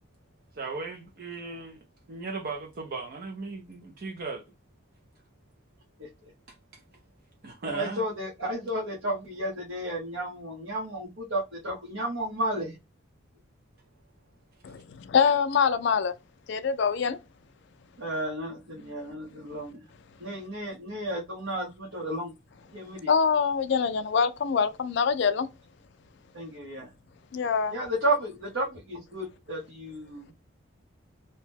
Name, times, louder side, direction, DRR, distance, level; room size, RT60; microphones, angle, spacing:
voice 1, 0.5-4.4 6.7-6.8 7.4-8.0 14.7-14.8, right 3 dB, 50° right, 0.5 m, -37 dB
voice 2, 7.7-12.8 18.0-19.8 20.2-22.3 22.7-23.1 26.3-26.9 27.7-30.3, right 1 dB, 70° right, 0.8 m, -32 dB
voice 3, 14.6-16.2 16.5-17.2 23.1-25.5 27.3-27.7, left 6 dB, 60° left, 0.3 m, -24 dB
2.8 x 2.1 x 3.4 m
head